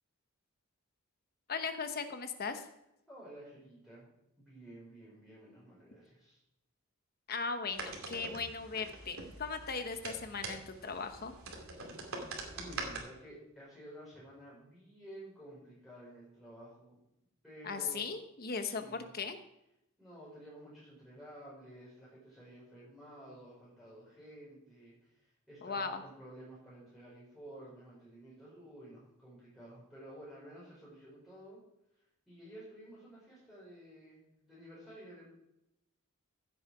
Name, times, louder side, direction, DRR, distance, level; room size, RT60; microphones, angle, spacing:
voice 1, 1.5-2.7 7.3-11.3 17.6-18.8 19.1-19.4 25.6-26.0, left 5 dB, 45° left, 7 dB, 1.0 m, -38 dB
voice 2, 3.1-6.4 11.8-12.1 12.5-17.0 17.4-18.1 18.6-19.1 20.0-31.6 31.9-35.3, right 1 dB, ahead, -8 dB, 4.8 m, -52 dB
sound 1, 7.7-13.0, right 3 dB, 70° right, 2.8 m, -44 dB
15.5 x 8.3 x 4.8 m, 0.83 s
head